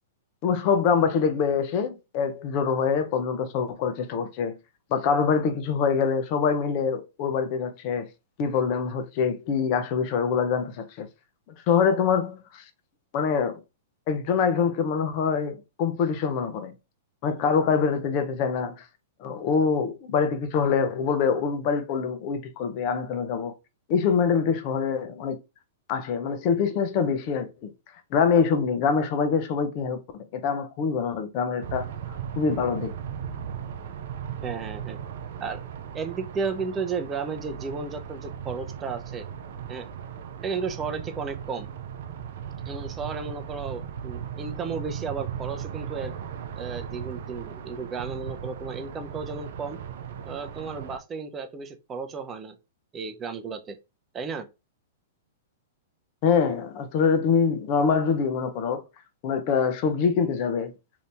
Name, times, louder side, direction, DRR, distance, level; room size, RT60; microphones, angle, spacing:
voice 1, 0.4-4.6 4.9-8.1 8.4-11.1 11.7-12.6 13.1-13.6 14.1-16.7 17.2-18.8 19.2-23.5 23.9-25.4 25.9-27.7 28.1-30.0 30.3-31.9 32.4-32.9 56.2-58.8 59.2-60.7, left 6 dB, 45° left, 0.6 m, -24 dB
sound 1, 31.6-51.0, right 8 dB, 65° right, 0.5 m, -37 dB
voice 2, 34.4-35.0 35.4-35.6 35.9-39.3 39.7-39.9 40.4-41.7 42.7-46.1 46.6-49.8 50.3-52.6 52.9-53.8 54.1-54.5, right 5 dB, 20° right, 0.6 m, -33 dB
2.8 x 2.6 x 3.3 m
hypercardioid pair, 120°, 0 cm